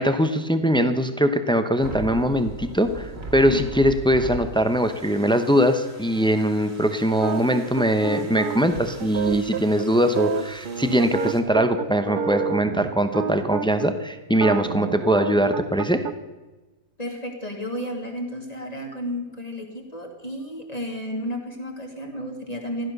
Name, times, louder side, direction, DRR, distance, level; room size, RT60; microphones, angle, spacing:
voice 1, 0.0-16.1, equal, 5° left, 8 dB, 0.3 m, -21 dB
sound 1, 1.8-11.4, right 2 dB, 35° right, 2.0 m, -40 dB
sound 2, 7.2-13.9 14.3-16.1, right 6 dB, 55° right, 0.6 m, -29 dB
voice 2, 17.0-22.9, equal, 20° left, 2 dB, 2.4 m, -32 dB
16.0 x 12.0 x 6.7 m, 1.1 s
omnidirectional pair, 1.8 m